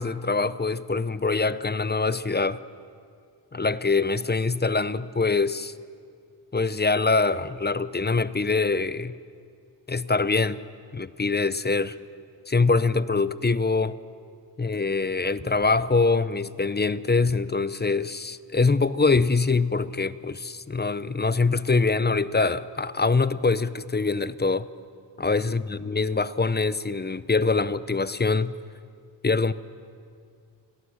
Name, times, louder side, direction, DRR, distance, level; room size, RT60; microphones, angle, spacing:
voice 1, 0.0-2.6 3.5-5.7 6.5-9.1 9.9-10.6 10.9-11.9 12.5-14.0 14.6-24.7 25.2-28.5 29.2-29.5, left 4 dB, 20° left, 0.7 m, -24 dB
29.0 x 17.5 x 6.5 m
cardioid pair, 50°, 44 cm